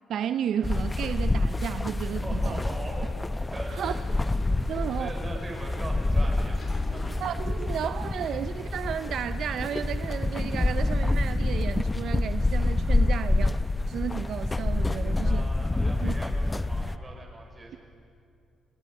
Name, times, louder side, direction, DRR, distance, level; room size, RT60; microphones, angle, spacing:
voice 1, 0.1-2.6 3.7-3.9 4.7-5.1 7.2-13.6 13.9-15.5 16.0-16.2, right 9 dB, 70° right, 12 dB, 0.5 m, -33 dB
sound 1, 0.6-17.0, left 2 dB, 15° left, 0.7 m, -27 dB
voice 2, 2.2-3.1 3.5-4.2 4.6-7.1 15.2-17.8, right 2 dB, 25° right, 1 dB, 5.4 m, -41 dB
Sliding door, 3.5-8.4, left 2 dB, 45° left, 3.5 m, -47 dB
sound 2, 5.1-12.9, equal, ahead, 1.5 m, -52 dB
26.0 x 22.0 x 5.4 m, 2.4 s
cardioid pair, 90°, 0 cm